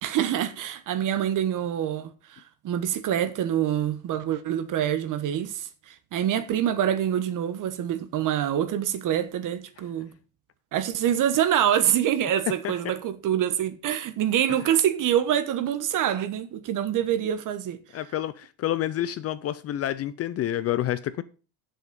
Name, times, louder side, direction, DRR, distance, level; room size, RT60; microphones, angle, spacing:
voice 1, 0.0-10.1 10.7-17.8, right 10 dB, 45° right, 1.1 m, -26 dB
voice 2, 17.9-21.2, left 12 dB, 35° left, 0.4 m, -28 dB
7.7 x 6.4 x 5.2 m
supercardioid pair, 120°, 43 cm